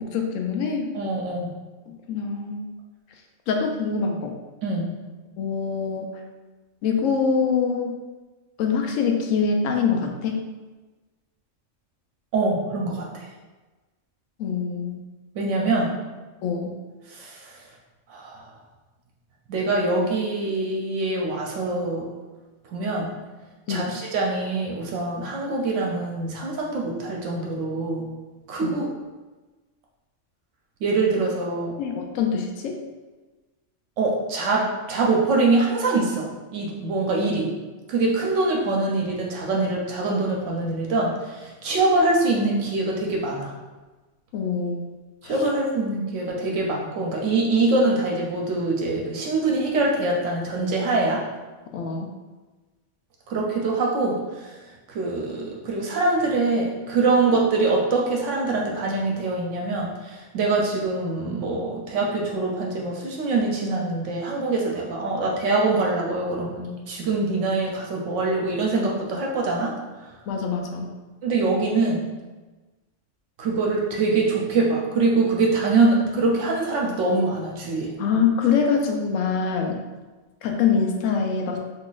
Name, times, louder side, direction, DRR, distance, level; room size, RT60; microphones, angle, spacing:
voice 1, 0.0-0.9 1.9-2.7 3.5-4.3 5.4-6.1 6.8-7.9 8.6-10.4 14.4-15.0 16.4-16.7 23.7-24.0 28.6-28.8 31.8-32.8 44.3-44.8 45.2-45.3 51.7-52.1 70.3-70.9 78.0-79.8 80.4-81.6, left 5 dB, 85° left, 3 dB, 0.9 m, -24 dB
voice 2, 0.9-1.5 4.6-5.0 12.3-13.3 15.3-16.0 17.1-17.6 18.1-18.5 19.5-22.1 22.7-23.1 23.7-28.1 28.5-28.9 30.8-31.8 34.0-37.5 37.9-43.5 45.2-51.2 53.3-54.6 54.9-69.7 70.0-70.1 71.2-72.1 73.4-77.9, right 3 dB, 75° right, -1 dB, 0.9 m, -24 dB
3.8 x 2.9 x 2.4 m, 1.2 s
omnidirectional pair, 1.3 m